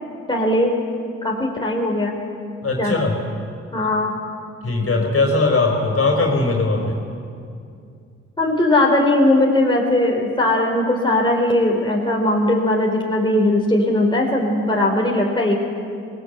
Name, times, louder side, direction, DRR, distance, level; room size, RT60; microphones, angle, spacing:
voice 1, 0.3-0.8 1.2-2.1 2.8-2.9 3.7-4.1 8.4-15.6, left 1 dB, 15° left, -1 dB, 3.8 m, -19 dB
voice 2, 2.6-3.2 4.6-7.0, left 3 dB, 40° left, 2 dB, 4.6 m, -19 dB
18.5 x 18.0 x 8.0 m, 2.4 s
hypercardioid pair, 45°, 34 cm